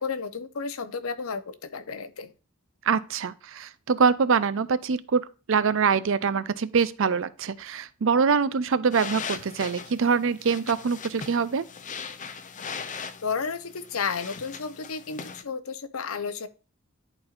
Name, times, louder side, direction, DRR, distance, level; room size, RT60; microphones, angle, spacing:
voice 1, 0.0-2.3 13.2-16.5, left 5 dB, 85° left, 0.8 m, -32 dB
voice 2, 2.9-11.6, right 5 dB, 65° right, 0.5 m, -24 dB
sound 1, 8.9-15.4, left 6 dB, 35° left, 0.6 m, -39 dB
11.0 x 4.3 x 2.5 m
head